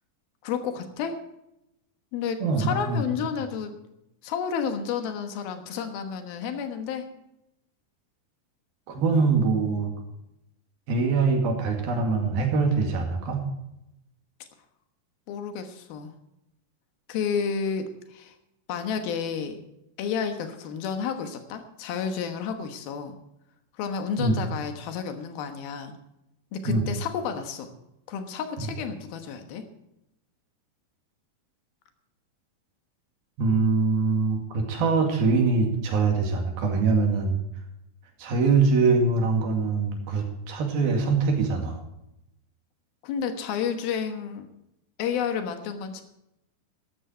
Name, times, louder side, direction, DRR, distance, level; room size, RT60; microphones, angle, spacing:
voice 1, 0.4-1.2 2.1-3.8 4.2-7.1 15.3-16.1 17.1-18.3 18.7-19.6 20.0-23.2 23.7-25.9 26.5-27.7 28.1-29.7 43.0-44.5 45.0-46.0, left 7 dB, 90° left, 7 dB, 3.2 m, -31 dB
voice 2, 2.4-3.0 8.9-9.9 10.9-13.4 24.2-24.3 26.7-26.9 33.4-37.4 38.2-41.8, right 4 dB, 85° right, 2 dB, 4.1 m, -23 dB
14.0 x 12.0 x 4.4 m, 0.85 s
omnidirectional pair, 4.1 m